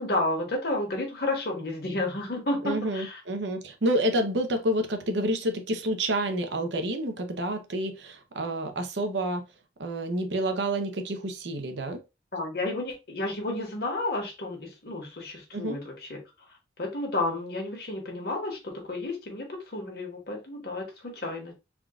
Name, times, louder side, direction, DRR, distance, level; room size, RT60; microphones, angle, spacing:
voice 1, 0.0-3.2 12.3-16.2 16.8-21.5, left 2 dB, 60° left, 1.3 m, -31 dB
voice 2, 2.6-9.4 9.8-12.0 15.5-15.8, right 1 dB, 90° right, 0.7 m, -29 dB
3.6 x 2.4 x 3.5 m
head